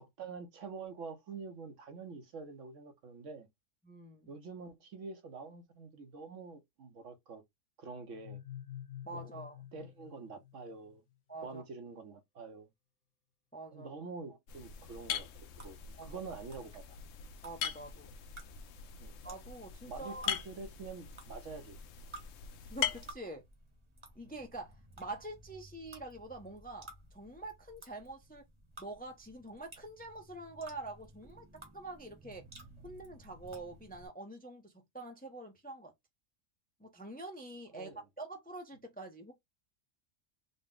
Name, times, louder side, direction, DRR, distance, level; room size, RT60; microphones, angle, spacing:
voice 1, 0.0-3.5 4.3-7.4 7.8-8.4 9.1-9.3 9.7-11.0 11.4-12.7 13.7-15.3 15.6-17.0 19.0-19.1 19.9-21.8 24.2-24.3 37.7-38.0, right 4 dB, 75° right, 1.2 m, -46 dB
voice 2, 3.8-4.3 9.0-9.6 11.3-11.6 13.5-14.0 16.0-16.1 17.4-18.1 19.2-20.3 22.7-23.4 24.2-28.4 28.8-31.5 31.7-32.4 32.8-35.9 36.8-37.9 38.2-39.3, right 2 dB, 10° left, 0.5 m, -46 dB
sound 1, 8.1-10.9, left 11 dB, 55° left, 0.6 m, -48 dB
sound 2, 14.5-23.1, left 8 dB, 80° left, 0.9 m, -41 dB
sound 3, 15.5-34.1, right 2 dB, 25° right, 1.0 m, -56 dB
3.9 x 2.2 x 3.6 m
omnidirectional pair, 1.3 m